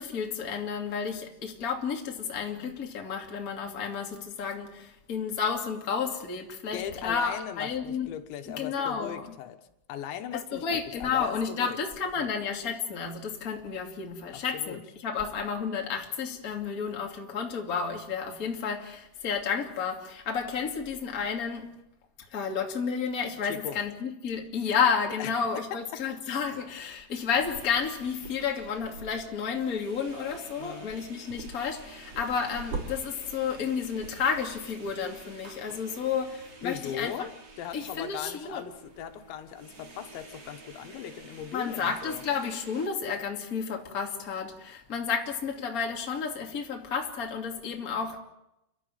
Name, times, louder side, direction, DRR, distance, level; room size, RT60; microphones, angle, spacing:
voice 1, 0.0-8.2 8.5-9.3 10.3-21.7 22.3-37.1 37.7-38.6 41.5-48.2, left 6 dB, 25° left, 2.3 m, -31 dB
voice 2, 6.7-9.6 9.9-11.8 12.2-12.3 14.3-14.8 23.4-23.8 25.2-25.5 30.6-31.0 36.6-42.2, left 10 dB, 85° left, 3.7 m, -39 dB
sound 1, 27.4-42.9, right 3 dB, 40° right, 3.8 m, -46 dB
30.0 x 12.5 x 9.3 m
omnidirectional pair, 5.1 m